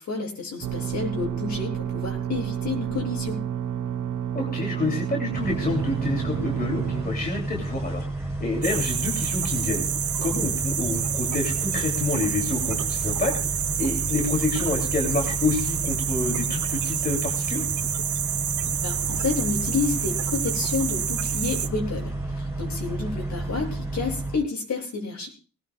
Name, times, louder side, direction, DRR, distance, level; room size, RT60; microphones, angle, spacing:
voice 1, 0.0-3.5 18.8-25.3, left 4 dB, 65° left, 1 dB, 7.8 m, -30 dB
sound 1, 0.6-7.1, right 9 dB, 85° right, 1.3 m, -30 dB
voice 2, 4.3-8.0 8.4-9.9 10.2-13.4 13.8-17.6, left 3 dB, 30° left, 0 dB, 3.2 m, -28 dB
sound 2, 5.3-24.4, right 2 dB, 10° right, 5.1 m, -31 dB
sound 3, 8.6-21.7, right 9 dB, 70° right, 1.0 m, -28 dB
19.5 x 19.5 x 2.4 m, 0.37 s
wide cardioid pair, 135°, 30 cm